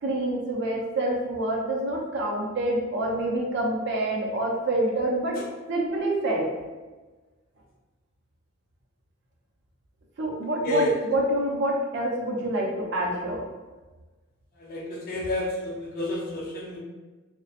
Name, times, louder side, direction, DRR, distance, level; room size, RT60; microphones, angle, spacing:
voice 1, 0.0-5.4 5.7-6.5 10.2-13.4, right 1 dB, 55° right, -2 dB, 0.5 m, -27 dB
voice 2, 14.6-16.8, left 1 dB, 45° left, -4 dB, 0.6 m, -30 dB
2.7 x 2.1 x 2.5 m, 1.3 s
head